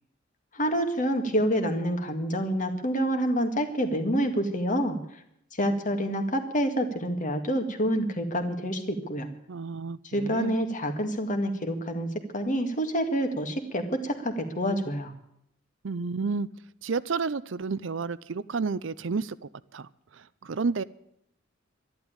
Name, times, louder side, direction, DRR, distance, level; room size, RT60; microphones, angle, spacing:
voice 1, 0.5-5.0 5.5-9.3 10.0-15.1, equal, 40° left, 6 dB, 2.0 m, -27 dB
voice 2, 9.5-10.6 15.8-16.5 16.8-19.4 19.7-19.9 20.4-20.8, right 4 dB, 65° right, 17 dB, 0.6 m, -30 dB
12.5 x 11.5 x 8.9 m, 0.75 s
head